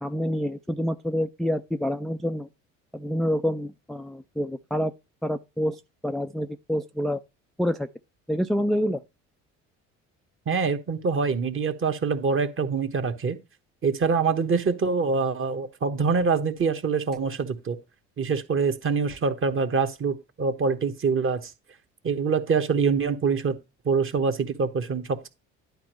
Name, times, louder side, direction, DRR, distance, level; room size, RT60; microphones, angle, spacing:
voice 1, 0.0-2.5 2.9-4.9 5.2-7.2 7.6-7.9 8.3-9.0, equal, ahead, 0.3 m, -27 dB
voice 2, 10.5-13.4 13.8-17.8 18.2-21.5 22.0-23.5 23.8-25.3, right 5 dB, 35° right, 1.2 m, -25 dB
10.5 x 4.3 x 3.1 m
hypercardioid pair, 60°, 37 cm